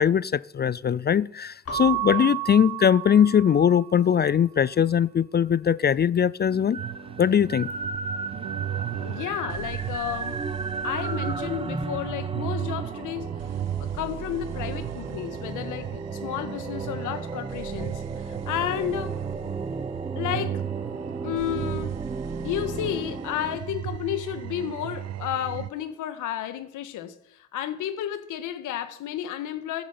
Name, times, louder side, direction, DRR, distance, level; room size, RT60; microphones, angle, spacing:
voice 1, 0.0-6.8 7.2-7.7, left 8 dB, 35° left, 0.4 m, -21 dB
Keyboard (musical) / Bell, 1.6-4.1, right 13 dB, 50° left, 3.5 m, -31 dB
sound 1, 6.5-23.6, right 3 dB, 20° right, 0.9 m, -35 dB
sound 2, 6.8-25.7, right 11 dB, 60° right, 0.7 m, -35 dB
voice 2, 9.0-10.6 10.8-13.3 13.8-19.2 20.2-20.6 21.2-22.0 22.4-29.8, left 11 dB, 90° left, 1.8 m, -32 dB
15.0 x 10.5 x 5.7 m
cardioid pair, 90°, 30 cm